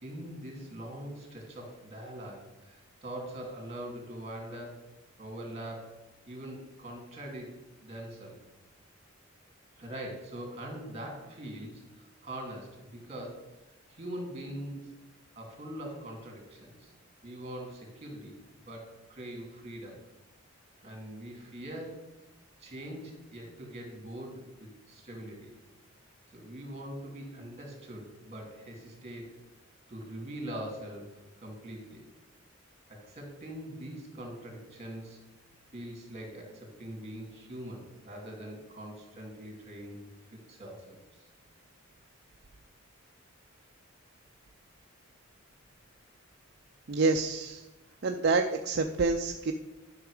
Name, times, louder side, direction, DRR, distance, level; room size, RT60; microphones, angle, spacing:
voice 1, 0.0-4.8 5.2-5.9 6.3-7.5 7.8-8.4 9.8-13.5 13.9-14.8 15.4-16.9 17.2-20.0 20.8-22.0 22.6-25.5 26.3-29.3 29.9-32.0 32.9-35.2 35.7-40.0 40.3-41.3, right 1 dB, 30° right, 1 dB, 2.7 m, -42 dB
voice 2, 46.9-47.6 48.0-49.5, right 3 dB, 55° right, 4 dB, 0.5 m, -27 dB
11.5 x 5.9 x 4.9 m, 1.1 s
head